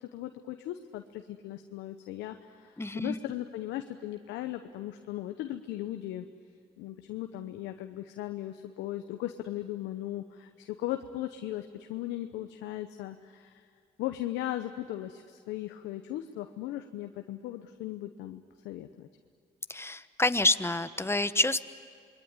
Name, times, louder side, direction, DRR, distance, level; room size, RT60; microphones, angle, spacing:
voice 1, 0.0-6.3 6.8-13.7 14.0-19.1, left 13 dB, 85° left, 7 dB, 0.9 m, -38 dB
voice 2, 2.8-3.1 19.7-21.7, left 2 dB, 15° left, 12 dB, 1.2 m, -28 dB
28.0 x 21.5 x 9.8 m, 2.2 s
supercardioid pair, 55°, 18 cm